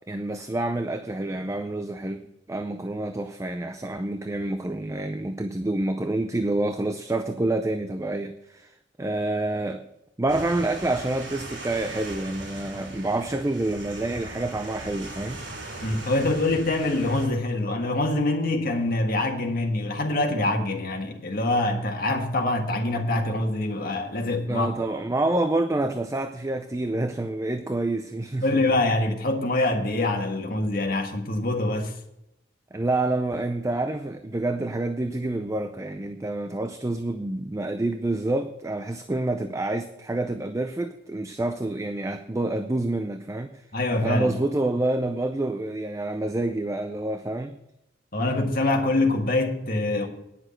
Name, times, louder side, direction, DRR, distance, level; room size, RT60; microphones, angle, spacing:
voice 1, 0.1-8.7 9.0-9.9 10.2-15.4 24.5-28.7 32.7-43.6 44.0-47.6, right 2 dB, 15° right, 0.5 m, -28 dB
sound 1, 10.3-17.3, right 2 dB, 85° right, 3.2 m, -39 dB
voice 2, 15.8-24.7 28.4-31.9 43.7-44.4 48.1-50.1, left 2 dB, 55° left, 1.7 m, -25 dB
10.0 x 6.4 x 7.6 m
head